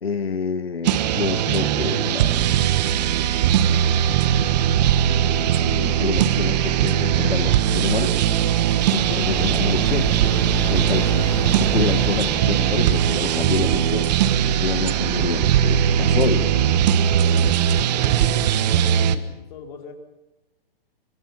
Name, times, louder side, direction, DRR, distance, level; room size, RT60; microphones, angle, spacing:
voice 1, 0.0-2.4 5.6-8.4 8.9-11.3 11.6-14.1 14.5-16.9, left 5 dB, 90° left, 10 dB, 1.1 m, -27 dB
sound 1, 0.8-19.2, right 10 dB, 45° right, 1.4 m, -20 dB
sound 2, 6.9-17.2, left 3 dB, 10° left, 2.0 m, -35 dB
voice 2, 17.9-19.2 19.5-19.9, left 7 dB, 50° left, 2 dB, 4.7 m, -38 dB
24.5 x 23.5 x 5.9 m, 1.0 s
hypercardioid pair, 125°, 30 cm